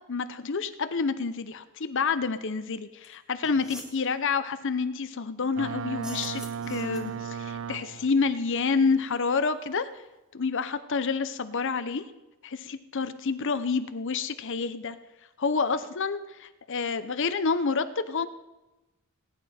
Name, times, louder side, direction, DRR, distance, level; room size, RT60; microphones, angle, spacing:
voice 1, 0.1-9.9 10.3-12.0 12.4-15.0 15.4-18.3, left 4 dB, 60° left, 11 dB, 0.7 m, -28 dB
sound 1, 3.0-3.1 3.4-4.0 5.9-7.2, equal, 5° right, 2.0 m, -44 dB
Boat Water vehicle, 5.6-8.3, right 7 dB, 60° right, 0.4 m, -35 dB
19.5 x 9.7 x 4.3 m, 1.0 s
head